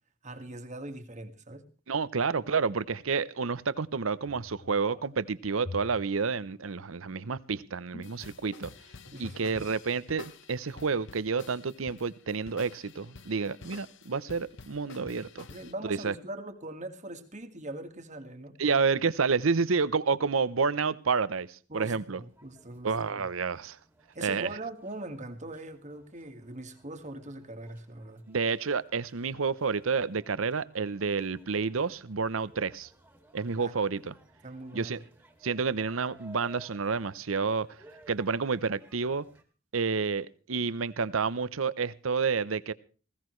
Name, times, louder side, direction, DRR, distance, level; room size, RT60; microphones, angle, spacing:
voice 1, 0.2-1.6 9.1-9.5 15.5-18.5 21.7-23.3 24.2-28.2 33.6-33.8 34.4-34.9, right 2 dB, 35° right, 1.8 m, -41 dB
voice 2, 1.9-8.7 9.2-15.5 15.9-16.1 18.6-22.2 22.8-23.8 24.2-24.5 28.3-32.9 33.3-34.1 34.7-35.0 35.4-37.7 38.1-39.3 39.7-42.7, right 5 dB, 75° right, 0.8 m, -29 dB
sound 1, 4.2-5.1 5.5-8.7 9.1-9.5 9.8-9.9, left 2 dB, 45° left, 1.9 m, -47 dB
sound 2, 8.0-15.7, left 4 dB, 60° left, 1.0 m, -50 dB
sound 3, 22.3-39.4, right 1 dB, 10° right, 2.3 m, -59 dB
20.0 x 16.5 x 3.2 m
head